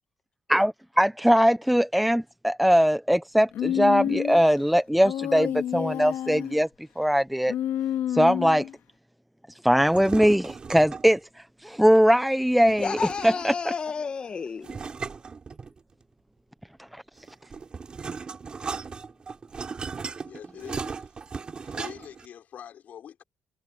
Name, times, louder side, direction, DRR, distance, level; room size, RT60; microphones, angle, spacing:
voice 1, 0.5-6.7 7.0-7.5 8.1-8.7 9.6-11.2 11.6-13.0 13.2-13.5 16.9-17.0, equal, ahead, 0.5 m, -21 dB
Human voice, 3.5-4.5 5.0-6.6 7.5-8.7, left 11 dB, 75° left, 2.1 m, -29 dB
sound 1, 9.8-11.2 12.6-13.6 14.6-16.0 17.2-22.3, right 5 dB, 25° right, 3.4 m, -37 dB
voice 2, 12.8-14.8, left 5 dB, 30° left, 1.5 m, -31 dB
voice 3, 20.2-21.1 21.6-23.2, left 9 dB, 50° left, 5.3 m, -44 dB
cardioid pair, 170°, 4 cm